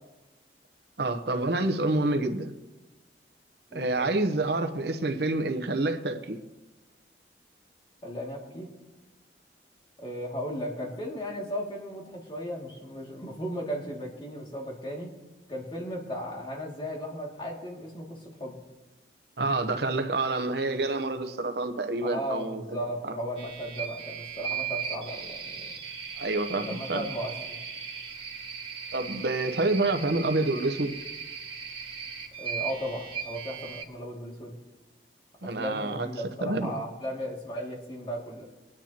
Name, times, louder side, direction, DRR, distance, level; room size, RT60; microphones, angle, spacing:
voice 1, 1.0-2.5 3.7-6.4 19.4-22.8 23.0-23.1 26.2-27.0 28.9-31.0 35.4-36.1 36.4-36.7, right 2 dB, 70° right, 0.9 m, -28 dB
voice 2, 3.7-4.1 8.0-8.7 10.0-15.2 15.5-18.6 22.0-25.7 26.5-27.6 32.4-34.5 35.4-38.4, equal, 30° left, 2.3 m, -36 dB
sound 1, 23.4-33.8, right 7 dB, 30° right, 1.8 m, -38 dB
23.0 x 10.0 x 2.9 m
head